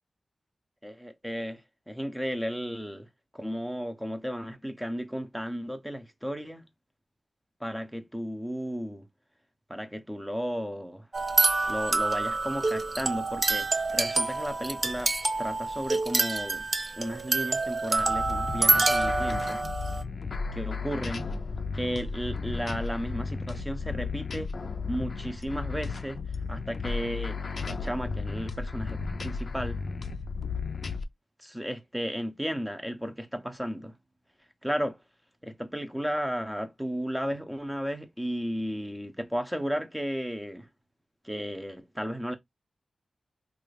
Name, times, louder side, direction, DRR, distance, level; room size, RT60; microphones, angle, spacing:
voice 1, 0.8-1.6 1.9-3.1 3.3-6.6 7.6-9.0 9.7-11.1 11.7-16.7 17.0-19.6 20.5-21.3 21.7-24.5 24.9-26.2 26.5-29.8 31.4-33.9 34.6-35.0 35.4-40.7 41.2-42.3, equal, 5° right, 0.7 m, -34 dB
sound 1, 11.1-20.0, right 3 dB, 35° right, 0.5 m, -27 dB
sound 2, 18.0-31.0, left 4 dB, 60° left, 0.5 m, -34 dB
3.1 x 2.4 x 3.3 m
wide cardioid pair, 100°, 0 cm